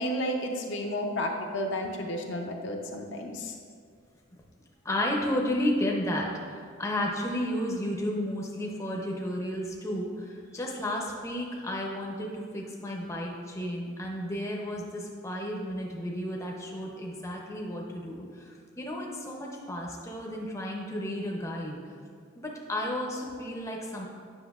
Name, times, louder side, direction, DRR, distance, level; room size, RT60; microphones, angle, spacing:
voice 1, 0.0-3.5, equal, 60° left, 2 dB, 0.5 m, -32 dB
voice 2, 4.8-21.8 22.4-24.0, left 1 dB, 15° left, -1 dB, 0.6 m, -32 dB
7.9 x 5.7 x 2.4 m, 2.1 s
head